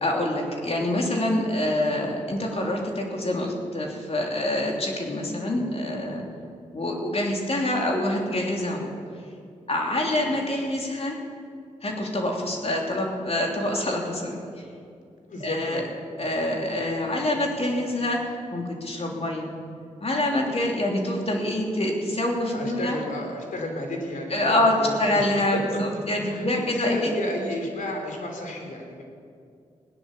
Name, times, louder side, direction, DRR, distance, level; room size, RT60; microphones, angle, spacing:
voice 1, 0.0-6.2 6.7-8.9 9.7-11.2 11.8-14.4 15.4-15.8 16.2-19.5 20.0-23.0 24.3-24.7 25.0-27.1, left 1 dB, 50° left, 0 dB, 3.2 m, -26 dB
voice 2, 15.3-15.9 22.5-25.3 25.5-25.8 26.1-29.0, left 1 dB, 75° left, 2 dB, 3.0 m, -32 dB
17.0 x 10.0 x 6.8 m, 2.3 s
supercardioid pair, 40°, 14 cm